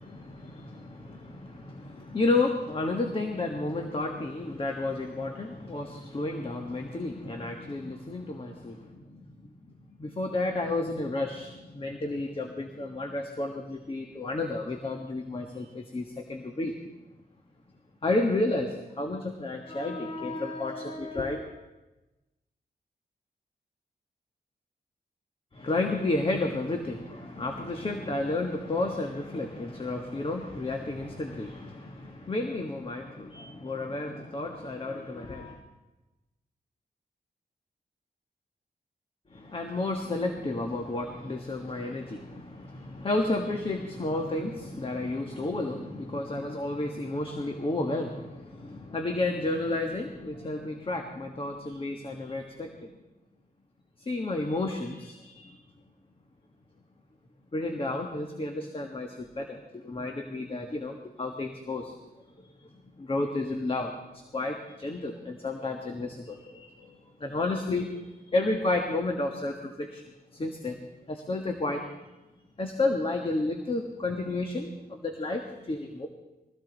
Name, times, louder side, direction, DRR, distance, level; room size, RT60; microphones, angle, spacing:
voice 1, 0.0-9.5 10.0-16.8 18.0-21.4 25.5-35.6 39.3-52.9 54.0-55.6 57.5-61.9 62.4-62.7 63.0-70.0 70.3-71.9 72.6-76.1, left 2 dB, 35° left, 3 dB, 1.4 m, -32 dB
21.5 x 16.0 x 4.0 m, 1.1 s
wide cardioid pair, 120°, 17 cm